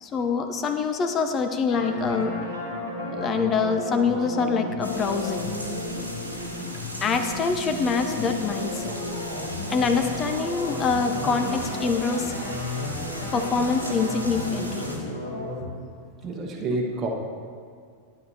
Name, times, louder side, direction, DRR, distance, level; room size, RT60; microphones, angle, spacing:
voice 1, 0.0-2.3 3.1-5.5 7.0-8.9 9.7-12.3 13.3-14.9, left 5 dB, 25° left, 7 dB, 0.6 m, -25 dB
sound 1, 1.7-15.7, left 2 dB, 70° left, 2.4 m, -33 dB
sound 2, 4.8-15.0, right 1 dB, 90° right, 1.1 m, -38 dB
voice 2, 16.2-17.1, right 2 dB, 25° right, -1 dB, 1.0 m, -28 dB
12.0 x 9.2 x 2.8 m, 2.1 s
figure-of-eight pair, 90°, 0 cm